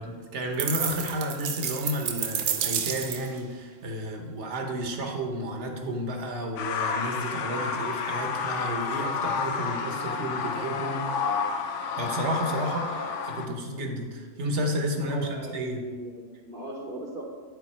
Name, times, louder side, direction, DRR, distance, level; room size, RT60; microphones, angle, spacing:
voice 1, 0.0-11.3 12.0-15.8, equal, 65° right, 2 dB, 1.3 m, -32 dB
sound 1, 0.6-3.4, right 8 dB, 85° right, 1.0 m, -30 dB
sound 2, 6.6-13.5, left 5 dB, 75° left, 0.9 m, -30 dB
voice 2, 15.0-17.2, right 1 dB, 50° right, -1 dB, 1.0 m, -38 dB
11.5 x 3.9 x 4.3 m, 1.5 s
omnidirectional pair, 1.3 m